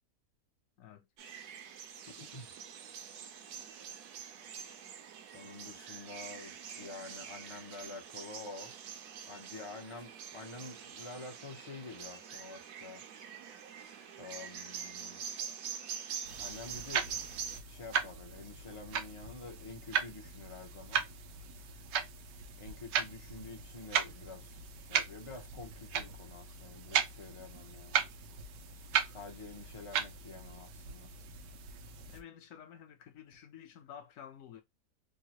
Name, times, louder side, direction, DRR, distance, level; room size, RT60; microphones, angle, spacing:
sound 1, 1.2-17.6, right 8 dB, 70° right, 1.1 m, -45 dB
voice 1, 2.1-2.5 5.3-8.7 9.2-13.0 14.2-15.2 16.4-17.2 17.6-21.1 22.6-28.0 29.1-31.1, left 3 dB, 35° left, 0.5 m, -48 dB
sound 2, 16.2-32.2, right 7 dB, 90° right, 1.3 m, -37 dB
voice 2, 32.1-34.6, left 9 dB, 60° left, 1.0 m, -51 dB
4.6 x 2.1 x 2.9 m
omnidirectional pair, 1.8 m